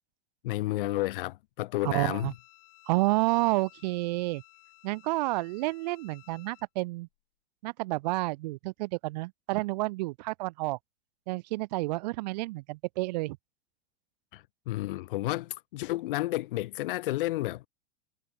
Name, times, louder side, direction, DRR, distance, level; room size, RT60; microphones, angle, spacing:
voice 1, 0.4-2.3 14.3-17.7, left 17 dB, 65° left, 1.1 m, -31 dB
Bowed string instrument, 1.7-6.7, left 35 dB, 45° left, 3.9 m, -57 dB
voice 2, 1.8-2.3 2.9-4.4 4.8-7.1 7.6-10.8 11.3-13.4, right 21 dB, 45° right, 0.4 m, -30 dB
supercardioid pair, 160°, 29 cm